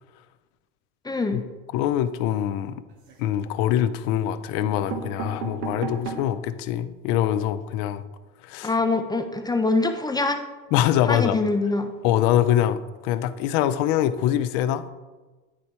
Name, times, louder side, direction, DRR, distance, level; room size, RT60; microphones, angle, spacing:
voice 1, 1.0-1.4 8.6-10.4 11.1-11.9, left 3 dB, 10° left, 6 dB, 0.3 m, -24 dB
voice 2, 1.7-2.8 3.2-8.0 8.4-8.7 10.7-11.4 12.0-14.9, left 11 dB, 65° left, 12 dB, 0.6 m, -24 dB
sound 1, 2.9-3.5 4.2-4.3 4.6-6.4 6.9-7.0 7.2-7.3 7.6-7.8, right 6 dB, 75° right, 1.3 m, -35 dB
9.7 x 3.4 x 4.3 m, 1.2 s
supercardioid pair, 95°, 43 cm